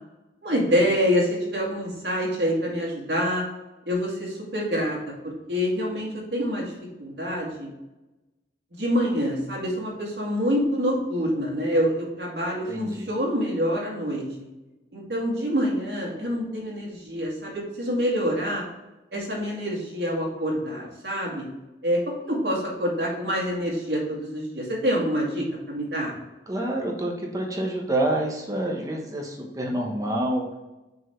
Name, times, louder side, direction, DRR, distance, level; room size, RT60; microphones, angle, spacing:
voice 1, 0.4-3.4 3.9-5.0 5.2-6.7 7.0-7.7 8.7-14.2 14.9-18.6 19.1-21.5 21.8-26.1, equal, 65° right, -3 dB, 2.2 m, -26 dB
voice 2, 12.7-13.1 26.5-30.5, right 1 dB, 20° right, 0 dB, 1.1 m, -27 dB
6.0 x 4.0 x 4.4 m, 1.0 s
head